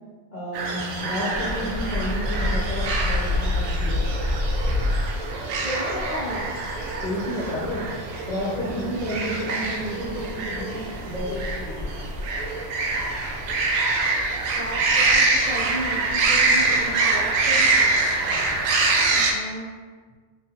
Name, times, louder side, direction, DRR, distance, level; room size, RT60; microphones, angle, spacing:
voice 1, 0.3-4.1 7.0-7.9 8.3-11.9 18.3-18.5, equal, 45° left, -7 dB, 0.6 m, -31 dB
sound 1, 0.5-19.3, right 3 dB, 85° right, 1.0 m, -25 dB
sound 2, 1.3-19.0, left 2 dB, 20° left, 0.8 m, -31 dB
voice 2, 5.6-6.5 14.5-17.9 19.1-19.8, equal, 35° right, -7 dB, 0.8 m, -33 dB
3.7 x 3.0 x 2.9 m, 1.5 s
omnidirectional pair, 1.4 m